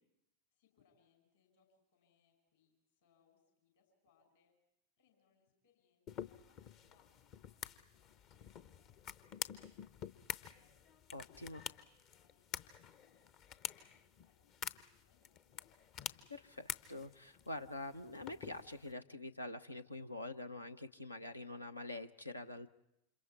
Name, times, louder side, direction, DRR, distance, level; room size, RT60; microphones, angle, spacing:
voice 1, 0.5-4.5 5.0-10.7 11.2-13.3 13.7-15.8, left 6 dB, 60° left, 3 dB, 5.8 m, -76 dB
sound 1, 6.1-18.9, left 8 dB, 40° left, 0.8 m, -48 dB
voice 2, 11.1-11.6 16.3-22.7, left 2 dB, 85° left, 10 dB, 0.8 m, -46 dB
29.0 x 26.5 x 4.6 m, 0.87 s
figure-of-eight pair, 90°, 0 cm